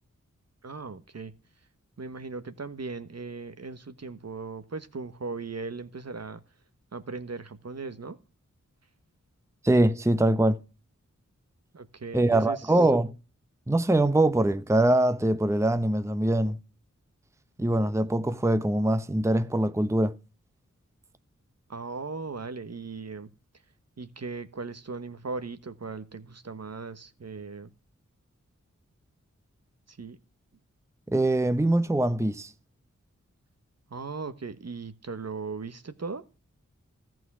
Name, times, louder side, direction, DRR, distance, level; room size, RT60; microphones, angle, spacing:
voice 1, 0.6-1.3 2.0-6.4 6.9-8.2 11.7-12.8 21.7-23.3 24.0-27.7 29.9-30.2 33.9-36.2, right 4 dB, 55° right, 1.3 m, -38 dB
voice 2, 9.6-10.6 12.1-13.1 13.7-16.6 17.6-20.1 31.1-32.5, right 1 dB, 10° right, 0.8 m, -23 dB
14.0 x 6.2 x 6.2 m
cardioid pair, 40°, 30 cm